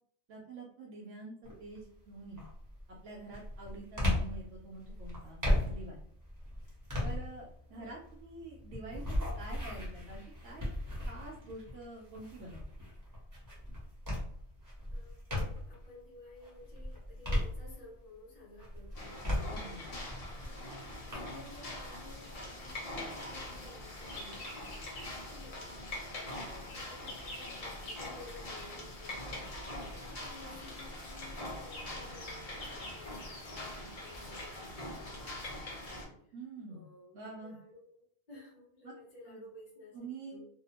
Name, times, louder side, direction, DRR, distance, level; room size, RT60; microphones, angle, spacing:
voice 1, 0.3-2.5 2.9-6.0 7.0-10.6 11.0-12.6 19.5-19.8 36.3-36.8 37.1-37.6 38.8-38.9 39.3-39.4 39.9-40.4, right 2 dB, 70° right, -2 dB, 0.8 m, -47 dB
sound 1, 1.4-1.8 2.3-15.8 16.3-18.1 18.6-21.1, left 1 dB, 20° right, 0.7 m, -36 dB
voice 2, 14.9-19.9 20.4-20.8 21.1-24.7 25.3-25.8 26.7-36.2 36.7-40.0 40.3-40.5, left 2 dB, 35° left, -6 dB, 0.9 m, -54 dB
sound 2, 18.9-36.0, left 1 dB, 50° left, 0.4 m, -43 dB
Bird vocalization bird call bird song, 23.1-25.4 25.7-35.2, left 1 dB, 80° left, 1.1 m, -52 dB
2.6 x 2.0 x 2.8 m, 0.66 s
omnidirectional pair, 1.5 m